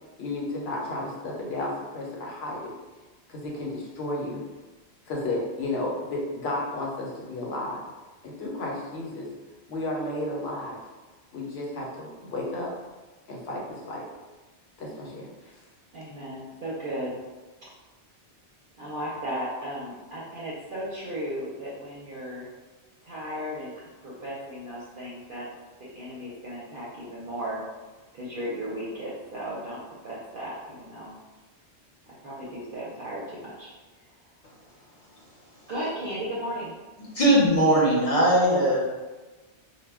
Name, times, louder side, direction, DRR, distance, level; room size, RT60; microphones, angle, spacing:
voice 1, 0.2-2.6 3.3-4.4 5.1-7.8 8.2-9.3 9.7-10.8 11.3-12.7 13.3-14.0 14.8-15.5, left 2 dB, 70° left, -3 dB, 0.9 m, -32 dB
voice 2, 15.9-17.2 17.6-17.7 18.8-22.5 23.0-25.5 25.8-27.6 28.1-31.1 32.2-33.7 35.7-36.7, equal, 60° right, -7 dB, 0.7 m, -35 dB
voice 3, 37.1-38.8, right 1 dB, 40° left, -5 dB, 0.7 m, -20 dB
2.1 x 2.1 x 3.4 m, 1.2 s
omnidirectional pair, 1.2 m